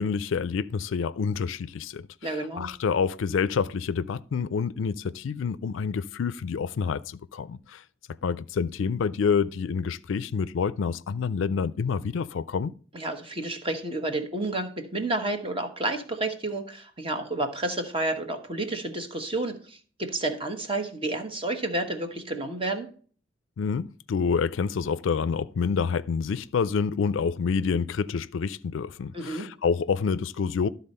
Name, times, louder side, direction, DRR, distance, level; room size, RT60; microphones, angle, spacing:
voice 1, 0.0-7.8 8.2-12.7 23.6-30.7, left 5 dB, 70° left, 0.4 m, -28 dB
voice 2, 2.2-2.7 12.9-22.9 29.1-29.5, right 2 dB, 30° right, 1.2 m, -30 dB
12.0 x 4.1 x 5.4 m
head